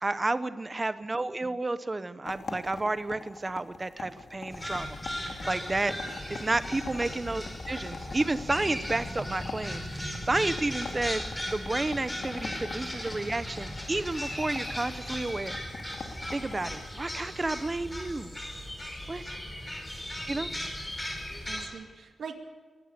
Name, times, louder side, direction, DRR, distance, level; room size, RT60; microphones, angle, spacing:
voice 1, 0.0-5.9 6.3-15.6 16.3-18.3 19.1-19.4 20.3-20.5, right 2 dB, 20° right, 13 dB, 0.9 m, -31 dB
sound 1, 2.2-16.8, left 4 dB, 65° left, 3.0 m, -44 dB
voice 2, 2.5-2.9 8.6-8.9 21.4-22.3, right 6 dB, 80° right, 5 dB, 2.6 m, -44 dB
sound 2, 4.5-21.7, left 1 dB, 10° left, 4.7 m, -37 dB
23.0 x 18.5 x 6.8 m, 1.5 s
wide cardioid pair, 170°, 0 cm